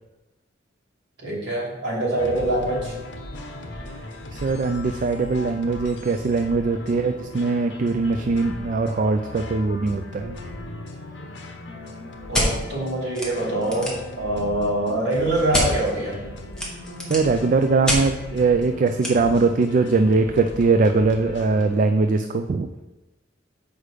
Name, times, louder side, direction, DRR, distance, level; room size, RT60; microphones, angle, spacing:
voice 1, 1.2-3.0 6.9-7.0 12.3-16.2, right 1 dB, 60° right, -5 dB, 2.7 m, -24 dB
sound 1, 2.2-21.7, left 1 dB, 65° left, 0.9 m, -38 dB
voice 2, 4.4-10.4 17.1-22.7, right 3 dB, 45° right, 6 dB, 0.3 m, -21 dB
sound 2, 12.3-12.5 13.1-13.3 13.6-14.1 15.5-15.7 16.5-17.3 17.9-18.0 19.0-19.1, equal, 5° left, 1.4 m, -24 dB
6.5 x 5.0 x 4.9 m, 1.0 s
head